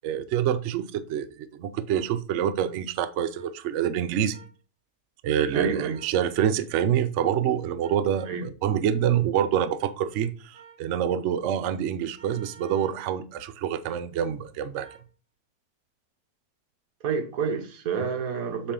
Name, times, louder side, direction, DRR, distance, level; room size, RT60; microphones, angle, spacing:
voice 1, 0.0-4.4 5.2-14.9, right 9 dB, 80° right, 0.6 m, -26 dB
sound 1, 1.9-2.1 3.3-3.5 4.3-4.6 5.9-6.2 7.8-8.4 10.5-10.8 12.2-13.0 14.8-15.1, right 6 dB, 40° right, 3.9 m, -51 dB
voice 2, 5.5-6.0 8.3-8.5 17.0-18.7, right 6 dB, 60° right, 1.3 m, -28 dB
7.0 x 4.3 x 3.7 m
omnidirectional pair, 1.9 m